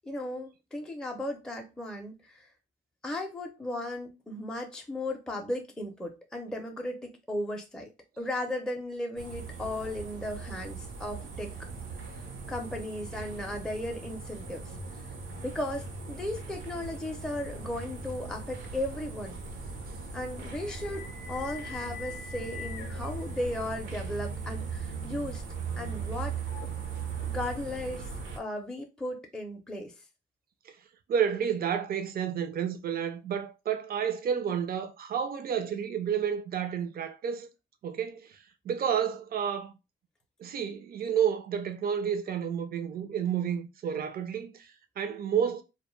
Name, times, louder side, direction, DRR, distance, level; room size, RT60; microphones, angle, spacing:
voice 1, 0.0-2.5 3.0-11.5 12.5-15.1 15.4-19.4 20.1-25.4 25.8-26.4 27.2-29.9, left 1 dB, 5° left, 0.5 m, -36 dB
sound 1, 9.2-28.4, right 5 dB, 80° right, 0.7 m, -39 dB
sound 2, 18.6-27.6, left 4 dB, 75° left, 0.5 m, -47 dB
voice 2, 31.1-37.5 37.8-38.4 38.6-39.7 40.4-45.6, right 8 dB, 50° right, 0.5 m, -30 dB
2.2 x 2.1 x 3.1 m
cardioid pair, 90°, 20 cm